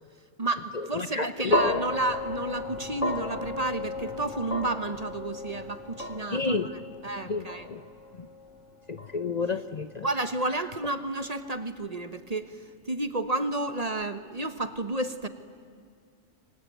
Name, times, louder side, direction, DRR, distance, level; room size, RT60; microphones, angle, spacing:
voice 1, 0.4-7.7 10.0-15.3, right 2 dB, 35° right, 10 dB, 1.2 m, -31 dB
voice 2, 1.0-1.7 6.3-6.7 7.2-7.8 8.2-8.3 8.9-10.1, left 3 dB, 40° left, 10 dB, 0.9 m, -30 dB
sound 1, 1.5-9.8, left 2 dB, 70° left, 3.3 m, -34 dB
26.5 x 23.5 x 9.3 m, 2.2 s
omnidirectional pair, 1.3 m